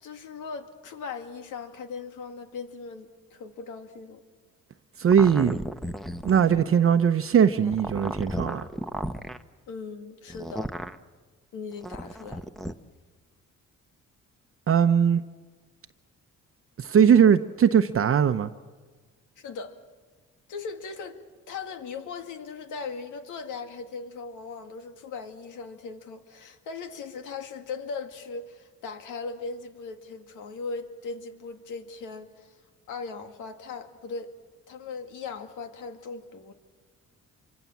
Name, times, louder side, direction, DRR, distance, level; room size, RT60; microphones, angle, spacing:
voice 1, 0.0-4.2 9.7-10.7 11.5-12.5 19.4-19.7 20.5-32.6 32.9-34.3 34.7-36.5, left 4 dB, 85° left, 2.2 m, -38 dB
voice 2, 5.0-5.6 6.2-8.6 14.7-15.2 16.8-18.5, right 8 dB, 45° right, 0.9 m, -20 dB
sound 1, 5.1-6.7 7.6-9.4 10.3-11.0 11.8-12.7, equal, ahead, 1.0 m, -34 dB
26.5 x 24.5 x 7.3 m
cardioid pair, 90°, 30 cm